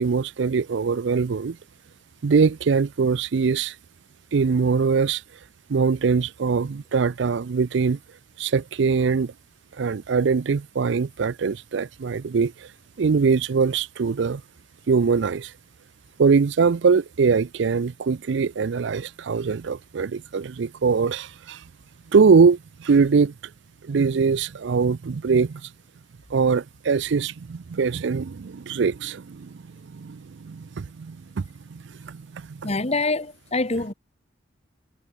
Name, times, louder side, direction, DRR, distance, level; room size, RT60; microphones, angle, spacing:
voice 1, 0.0-1.6 2.2-3.7 4.3-5.2 5.7-8.0 8.4-9.3 9.8-12.7 13.0-14.4 14.9-15.5 16.2-21.6 22.1-23.3 23.8-25.6 26.3-32.7, right 5 dB, 65° right, 0.5 m, -22 dB
voice 2, 32.6-33.9, left 2 dB, 35° left, 2.0 m, -25 dB
head